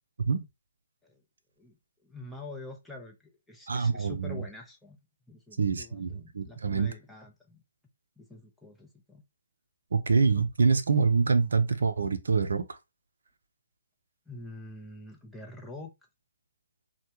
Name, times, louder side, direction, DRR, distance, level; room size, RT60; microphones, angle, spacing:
voice 1, 2.0-5.0 5.3-7.6 8.2-9.2 14.3-15.9, left 2 dB, 5° left, 0.6 m, -46 dB
voice 2, 3.7-4.4 5.6-6.9 9.9-12.8, right 5 dB, 65° right, 0.4 m, -26 dB
3.1 x 2.1 x 2.8 m
figure-of-eight pair, 130°, 0 cm